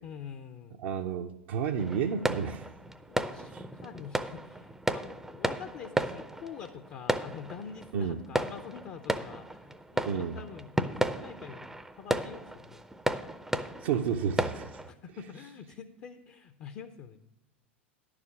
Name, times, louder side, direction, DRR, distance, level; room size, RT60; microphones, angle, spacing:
voice 1, 0.0-0.8 3.2-10.7 11.1-12.8 14.9-17.2, left 7 dB, 45° left, 0.6 m, -45 dB
voice 2, 0.8-2.7 3.5-3.6 7.9-8.2 10.1-10.4 13.8-14.8, right 7 dB, 60° right, 0.6 m, -31 dB
sound 1, 1.8-14.9, right 1 dB, 5° right, 0.5 m, -34 dB
11.0 x 4.9 x 7.0 m
figure-of-eight pair, 90°, 6 cm